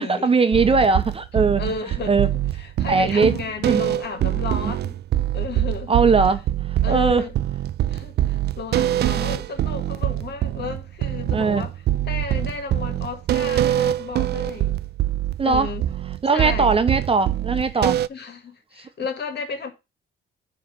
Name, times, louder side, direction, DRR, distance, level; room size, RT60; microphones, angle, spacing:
voice 1, 0.0-1.7 2.1-2.3 2.9-3.3 3.6-3.8 5.9-7.3 11.3-11.7 15.4-15.7 16.2-18.0 18.8-18.9, right 4 dB, 30° right, 0.8 m, -20 dB
sound 1, 0.5-18.1, right 13 dB, 55° right, 0.4 m, -24 dB
voice 2, 1.6-2.2 2.6-5.0 5.3-6.0 6.8-7.3 7.9-11.7 12.1-14.8 15.4-15.9 16.3-16.7 17.7-19.7, left 5 dB, 55° left, 1.8 m, -33 dB
9.4 x 3.2 x 5.7 m
cardioid pair, 90°, 20 cm